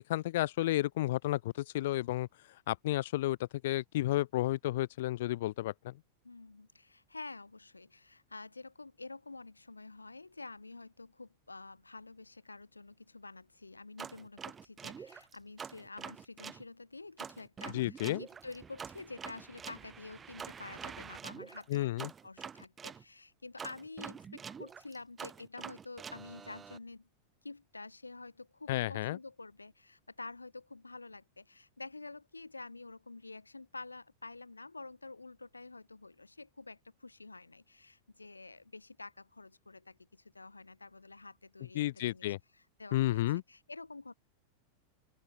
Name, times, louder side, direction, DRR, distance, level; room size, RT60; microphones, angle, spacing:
voice 1, 0.0-2.3 2.7-5.9 17.7-18.2 21.7-22.1 28.7-29.2 41.7-42.4 42.9-43.4, left 15 dB, 55° left, 0.4 m, -32 dB
voice 2, 6.2-27.1 27.4-44.1, left 3 dB, 80° left, 7.3 m, -49 dB
sound 1, 14.0-16.6 17.2-23.0 23.6-26.8, right 6 dB, 20° right, 4.7 m, -46 dB
open air
figure-of-eight pair, 90°, 0 cm